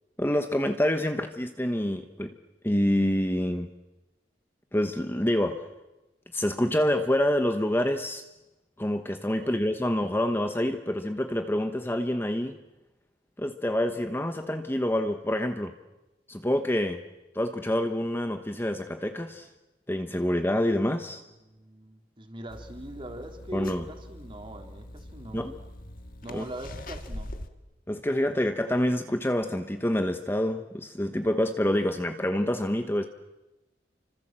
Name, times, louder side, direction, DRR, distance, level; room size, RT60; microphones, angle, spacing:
voice 1, 0.2-2.3 2.6-3.7 4.7-5.6 6.3-8.2 8.8-12.6 13.4-15.7 16.3-17.0 17.3-19.5 19.9-21.2 23.5-23.8 25.3-25.5 26.3-26.4 27.9-33.0, left 1 dB, 15° left, 7 dB, 1.1 m, -27 dB
voice 2, 9.4-9.7 21.4-25.5 26.2-27.3, right 1 dB, 30° right, 4 dB, 3.6 m, -41 dB
sound 1, 22.5-27.5, left 1 dB, 50° left, 1.9 m, -43 dB
30.0 x 25.5 x 7.6 m, 1.0 s
head